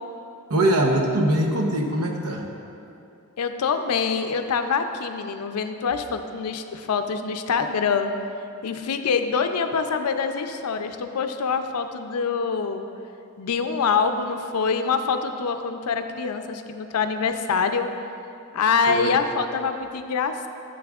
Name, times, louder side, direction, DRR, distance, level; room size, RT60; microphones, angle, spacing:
voice 1, 0.5-2.5 18.9-19.1, right 1 dB, 90° right, 2 dB, 0.8 m, -22 dB
voice 2, 3.4-8.1 8.6-12.9 13.4-17.9 18.5-20.5, left 5 dB, 85° left, 8 dB, 0.4 m, -25 dB
10.0 x 7.6 x 2.4 m, 2.7 s
head